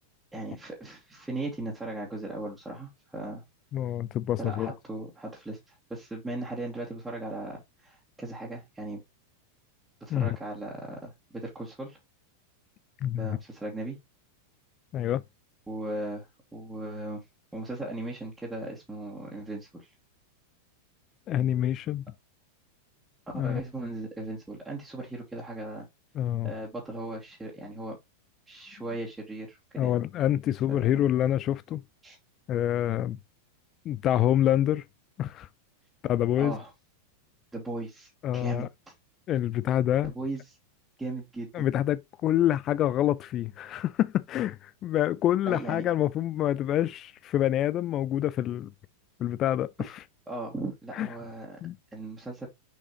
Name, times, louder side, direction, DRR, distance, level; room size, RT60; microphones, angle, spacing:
voice 1, 0.3-3.4 4.4-9.0 10.0-12.0 13.2-14.0 15.7-17.2 17.5-19.9 23.3-25.9 26.4-28.0 28.5-30.0 30.7-31.0 32.0-32.2 36.4-36.7 37.5-38.9 40.0-40.6 41.0-41.6 45.5-45.8 50.3-51.6 51.9-52.5, right 2 dB, 10° right, 2.1 m, -37 dB
voice 2, 3.7-4.7 10.1-10.3 13.0-13.3 14.9-15.2 21.3-22.0 23.3-23.6 26.2-26.5 29.8-31.8 32.5-33.2 33.9-34.8 35.2-35.5 36.0-36.6 38.2-38.7 39.3-40.1 41.5-48.7 49.2-49.7 50.9-51.1 51.6-51.7, left 12 dB, 30° left, 0.3 m, -26 dB
6.5 x 5.5 x 3.0 m
figure-of-eight pair, 90°, 0 cm